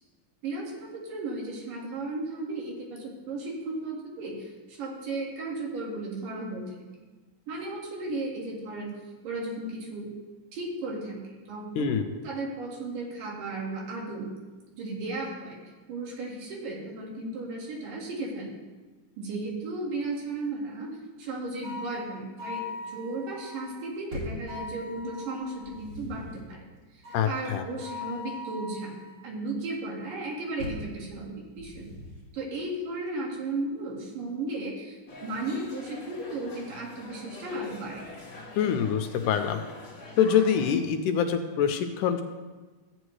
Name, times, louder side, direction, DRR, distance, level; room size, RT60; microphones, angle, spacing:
voice 1, 0.4-4.4 4.7-6.8 7.5-8.9 9.2-10.1 10.5-14.3 14.8-15.6 15.9-18.5 19.2-20.9 21.2-26.7 27.3-28.9 29.2-32.0 32.3-38.0, right 2 dB, 80° right, -2 dB, 3.5 m, -35 dB
sound 1, 21.6-23.8 24.5-25.7 27.0-29.2, left 3 dB, 60° right, 4.2 m, -41 dB
sound 2, 24.1-24.5 25.4-26.5 30.6-31.0 31.6-32.3, left 2 dB, 20° right, 2.1 m, -40 dB
voice 2, 27.1-27.7 38.6-39.6 40.2-42.2, left 8 dB, 80° left, 6 dB, 2.0 m, -25 dB
sound 3, 35.1-40.7, left 2 dB, 40° left, 1.9 m, -45 dB
14.5 x 9.0 x 3.2 m, 1.3 s
omnidirectional pair, 3.8 m